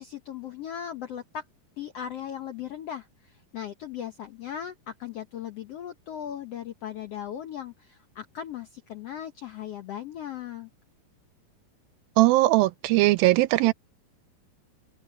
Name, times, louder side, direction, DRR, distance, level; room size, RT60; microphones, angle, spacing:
voice 1, 0.0-1.4 1.8-10.7, left 9 dB, 75° left, 1.4 m, -38 dB
voice 2, 12.2-13.7, right 18 dB, 85° right, 2.3 m, -20 dB
open air
omnidirectional pair, 4.2 m